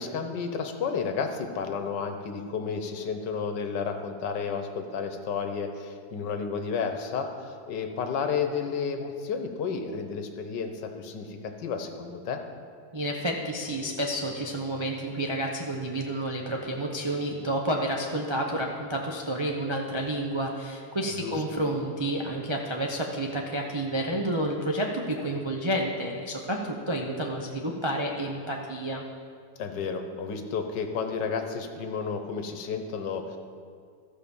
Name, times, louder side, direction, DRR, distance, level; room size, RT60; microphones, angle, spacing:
voice 1, 0.0-12.4 21.1-21.3 29.6-33.4, left 5 dB, 80° left, 6 dB, 1.5 m, -32 dB
voice 2, 12.9-29.0, right 1 dB, 40° right, -1 dB, 0.4 m, -30 dB
14.5 x 4.9 x 7.0 m, 2.2 s
omnidirectional pair, 1.9 m